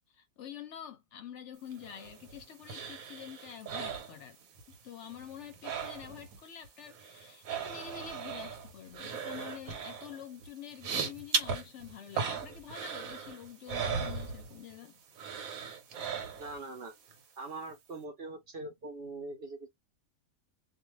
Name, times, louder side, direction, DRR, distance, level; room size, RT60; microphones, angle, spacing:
voice 1, 0.1-4.4 4.8-15.0, left 9 dB, 65° left, 0.8 m, -47 dB
sound 1, 1.7-4.8 5.0-6.4 6.6-14.8 15.2-16.7 17.1-17.2, right 5 dB, 75° right, 1.2 m, -38 dB
voice 2, 16.4-16.9 17.4-19.7, right 2 dB, 55° right, 0.8 m, -42 dB
2.4 x 2.4 x 3.1 m
omnidirectional pair, 1.4 m